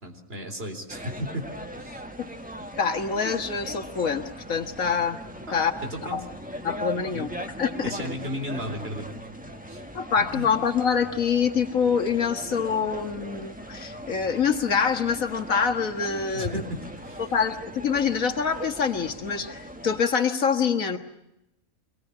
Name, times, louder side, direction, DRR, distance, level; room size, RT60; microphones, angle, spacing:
voice 1, 0.0-1.4 1.8-2.0 5.5-6.3 7.1-7.3 7.8-9.2 9.7-9.8 10.2-10.5 16.3-17.4, equal, 45° right, 4 dB, 4.0 m, -35 dB
sound 1, 0.9-20.0, equal, 5° right, 1.5 m, -39 dB
voice 2, 2.8-5.2 5.5-5.7 6.1-6.2 6.6-7.3 7.6-7.9 9.9-16.6 17.2-21.0, left 6 dB, 85° left, 5 dB, 2.1 m, -25 dB
26.0 x 19.5 x 9.7 m, 0.86 s
omnidirectional pair, 1.4 m